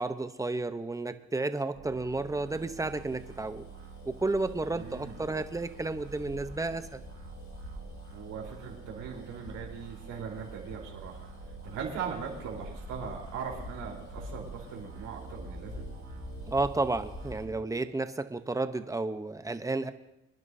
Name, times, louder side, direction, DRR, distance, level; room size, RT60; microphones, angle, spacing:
voice 1, 0.0-3.6 4.0-7.0 16.5-19.9, right 2 dB, 10° right, 9 dB, 0.8 m, -32 dB
sound 1, 1.7-17.7, right 6 dB, 60° right, 2.1 m, -48 dB
Bus, 2.3-17.5, left 2 dB, 70° left, 2.7 m, -47 dB
voice 2, 4.7-5.2 8.1-11.3 11.6-15.9, right 6 dB, 90° right, -1 dB, 4.0 m, -40 dB
25.5 x 11.0 x 2.7 m, 0.92 s
cardioid pair, 90°, 30 cm